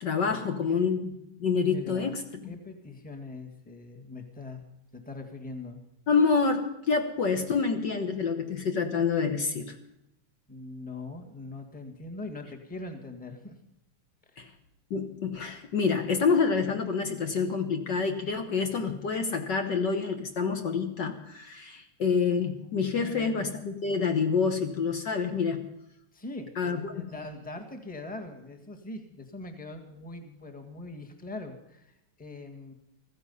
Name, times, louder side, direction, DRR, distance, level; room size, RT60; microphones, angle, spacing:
voice 1, 0.0-2.5 6.1-9.8 14.4-14.5 14.9-25.6 26.6-27.1, left 5 dB, 55° left, 5 dB, 1.7 m, -27 dB
voice 2, 1.7-2.2 2.5-4.6 4.9-5.8 10.5-13.6 14.3-14.5 23.0-23.5 26.1-32.7, left 2 dB, 5° left, 5 dB, 1.5 m, -42 dB
15.0 x 15.0 x 5.5 m, 0.85 s
omnidirectional pair, 2.4 m